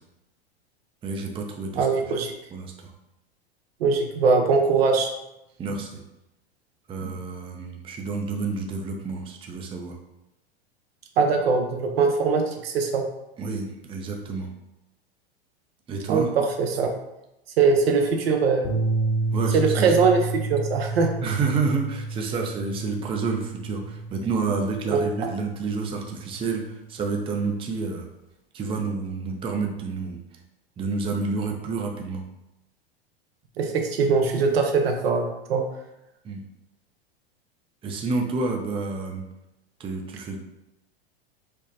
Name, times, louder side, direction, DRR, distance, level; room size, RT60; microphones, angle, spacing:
voice 1, 1.0-1.9 2.5-2.9 5.6-6.0 6.9-10.0 13.4-14.5 15.9-16.3 19.3-19.9 21.2-28.1 28.5-30.2 30.8-32.2 36.2-36.4 37.8-39.2 39.8-40.4, right 4 dB, 20° right, 2 dB, 0.5 m, -29 dB
voice 2, 1.7-2.3 3.8-5.1 11.2-13.0 16.1-16.2 16.6-16.9 17.6-18.8 19.5-20.2 20.5-21.1 24.9-25.0 33.6-35.6, right 4 dB, 75° right, 3 dB, 0.7 m, -21 dB
sound 1, 18.6-27.0, right 3 dB, 60° left, 0.9 m, -30 dB
4.9 x 2.1 x 2.8 m, 0.89 s
hypercardioid pair, 100°, 30 cm